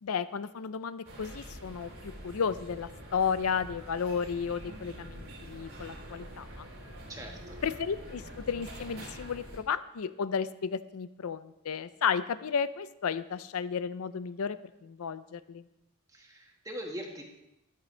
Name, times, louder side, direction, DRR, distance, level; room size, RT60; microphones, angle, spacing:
voice 1, 0.0-6.7 7.6-15.6, left 6 dB, 85° left, 14 dB, 0.5 m, -33 dB
sound 1, 1.0-9.6, equal, 90° right, 3.4 m, -46 dB
voice 2, 7.1-7.6 16.1-17.2, equal, 15° right, 1 dB, 1.6 m, -41 dB
13.5 x 11.0 x 3.3 m, 0.87 s
head